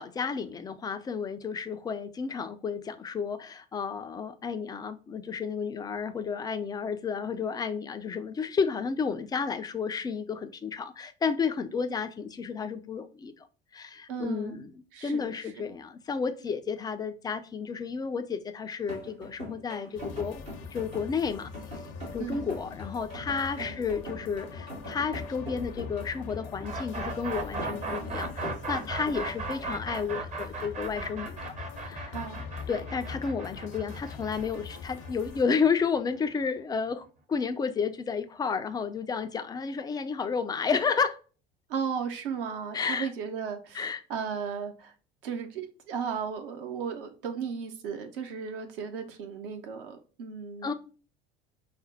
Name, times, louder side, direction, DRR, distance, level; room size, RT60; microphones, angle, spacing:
voice 1, 0.0-13.3 13.7-20.4 20.7-21.5 22.1-31.5 31.8-32.1 32.7-41.2 42.7-43.1 43.7-44.0 50.6-50.7, left 5 dB, 15° left, 0.4 m, -31 dB
voice 2, 14.1-14.6 14.9-15.4 22.2-22.5 23.6-23.8 32.1-32.4 41.7-44.9 45.2-50.7, right 6 dB, 60° right, 0.8 m, -35 dB
sound 1, 18.8-29.8, equal, 80° right, 1.8 m, -42 dB
sound 2, 20.0-35.4, left 5 dB, 50° left, 0.6 m, -43 dB
sound 3, 26.6-36.5, right 3 dB, 25° right, 0.7 m, -37 dB
5.0 x 2.1 x 4.0 m
figure-of-eight pair, 65°, 31 cm